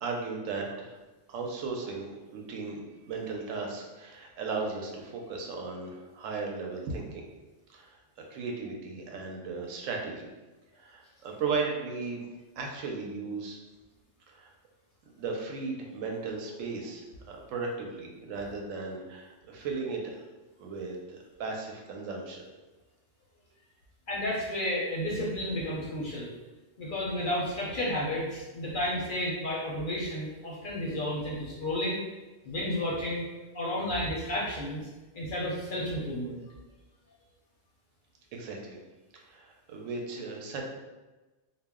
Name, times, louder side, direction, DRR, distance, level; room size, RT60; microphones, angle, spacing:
voice 1, 0.0-1.0 1.3-2.1 2.3-2.8 3.1-7.2 7.7-8.0 8.3-10.3 10.8-12.3 12.6-13.6 14.3-14.5 15.2-20.0 20.6-22.5 38.3-38.8 39.3-40.6, right 4 dB, 85° right, 1 dB, 0.9 m, -36 dB
voice 2, 24.1-26.3 26.8-32.0 32.4-33.3 33.5-34.8 35.1-36.4, left 1 dB, 55° left, -5 dB, 0.6 m, -32 dB
2.3 x 2.0 x 3.4 m, 1.2 s
omnidirectional pair, 1.3 m